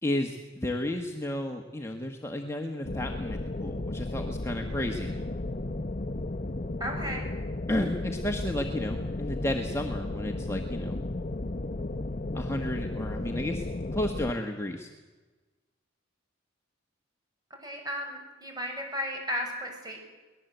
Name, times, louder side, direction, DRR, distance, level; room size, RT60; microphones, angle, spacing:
voice 1, 0.0-5.1 7.7-11.0 12.3-13.6 13.9-14.9, left 1 dB, 15° left, 2 dB, 1.4 m, -32 dB
sound 1, 2.8-14.3, left 2 dB, 40° left, 0.7 m, -34 dB
voice 2, 6.8-7.3 17.6-20.0, equal, 20° right, 2 dB, 6.5 m, -34 dB
23.5 x 19.5 x 8.1 m, 1.2 s
head